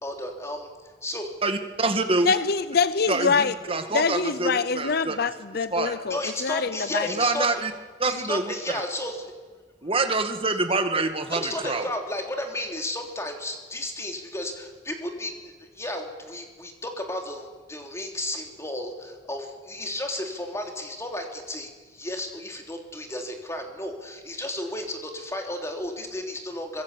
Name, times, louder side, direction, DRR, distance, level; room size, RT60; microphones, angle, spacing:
voice 1, 0.0-0.6 1.0-1.3 6.1-7.5 8.0-9.3 11.3-26.8, left 1 dB, 15° left, 3 dB, 3.2 m, -33 dB
voice 2, 1.4-2.3 3.1-5.2 5.7-5.9 7.1-7.7 8.0-8.5 9.8-11.9, right 3 dB, 30° right, 7 dB, 1.9 m, -26 dB
voice 3, 2.3-3.5 3.9-7.1, left 5 dB, 60° left, 14 dB, 0.7 m, -25 dB
24.5 x 21.5 x 8.4 m, 1.4 s
head